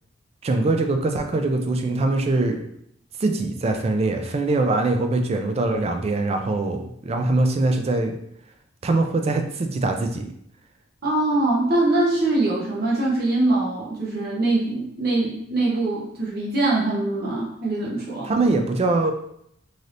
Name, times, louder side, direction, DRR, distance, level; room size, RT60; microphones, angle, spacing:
voice 1, 0.4-2.7 3.2-8.1 8.8-10.3 18.2-19.1, right 2 dB, 30° right, 5 dB, 0.3 m, -22 dB
voice 2, 11.0-18.3, right 2 dB, 50° right, -5 dB, 0.8 m, -23 dB
3.2 x 2.7 x 2.6 m, 0.73 s
head